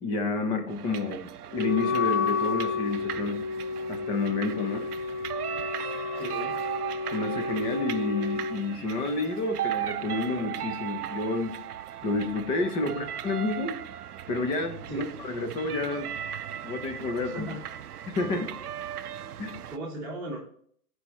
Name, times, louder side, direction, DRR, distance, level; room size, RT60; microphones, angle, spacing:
voice 1, 0.0-3.4 3.9-4.9 7.1-11.6 12.0-13.8 14.3-16.1 16.6-17.5 18.1-18.5 19.4-19.6, left 3 dB, 10° left, 6 dB, 0.5 m, -30 dB
sound 1, 0.7-19.8, right 11 dB, 80° right, 0.6 m, -37 dB
Wind instrument woodwind instrument, 1.5-8.6, left 5 dB, 65° left, 0.8 m, -31 dB
voice 2, 6.1-6.6 12.8-13.1 14.9-15.1 17.2-17.6 19.7-20.4, right 1 dB, 5° right, -8 dB, 1.2 m, -37 dB
14.5 x 5.0 x 3.0 m, 0.63 s
hypercardioid pair, 135°, 45 cm